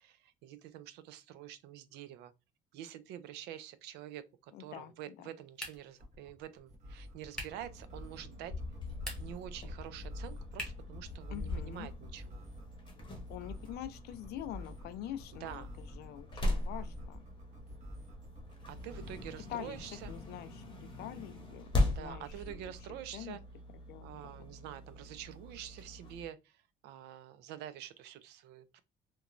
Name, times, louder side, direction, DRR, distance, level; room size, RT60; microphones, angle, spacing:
voice 1, 0.0-2.3 2.7-8.5 9.2-12.4 15.4-15.7 18.7-20.1 21.9-23.4 24.0-28.8, right 11 dB, 90° right, 0.4 m, -47 dB
voice 2, 4.5-5.3 11.3-11.9 13.3-17.3 19.4-22.6 23.1-23.4 23.9-24.5, left 12 dB, 75° left, 0.4 m, -45 dB
sound 1, 5.5-6.0 7.3-7.7 8.9-9.5 10.5-10.9, equal, 5° left, 1.0 m, -43 dB
sound 2, 6.0-20.4 22.2-22.8, left 1 dB, 45° right, 1.1 m, -49 dB
sound 3, 7.5-26.3, left 2 dB, 30° left, 0.8 m, -40 dB
2.9 x 2.2 x 2.5 m
cardioid pair, 110°, 17 cm